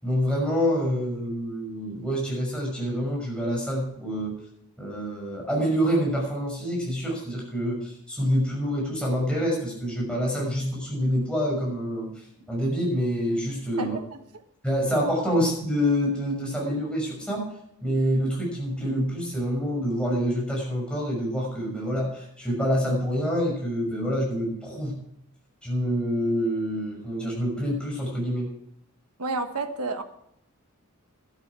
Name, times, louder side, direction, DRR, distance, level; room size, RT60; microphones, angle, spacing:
voice 1, 0.0-4.3 4.8-14.0 14.6-17.4 17.8-25.0 25.6-28.5, equal, 5° left, -3 dB, 6.1 m, -27 dB
voice 2, 13.7-14.2 15.3-15.4 29.2-30.0, right 3 dB, 85° right, 7 dB, 1.4 m, -31 dB
12.5 x 11.5 x 4.8 m, 0.74 s
head